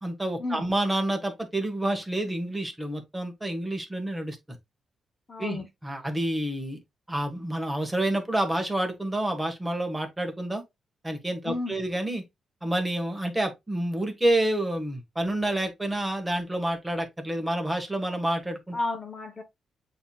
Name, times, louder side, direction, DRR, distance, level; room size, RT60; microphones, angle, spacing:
voice 1, 0.0-4.6 5.4-6.8 7.1-10.6 11.0-12.2 12.6-18.8, right 1 dB, 10° right, 1.1 m, -28 dB
voice 2, 5.3-5.7 11.4-11.8 18.7-19.4, left 2 dB, 35° left, 0.8 m, -32 dB
7.9 x 2.8 x 2.3 m
cardioid pair, 115°, 0 cm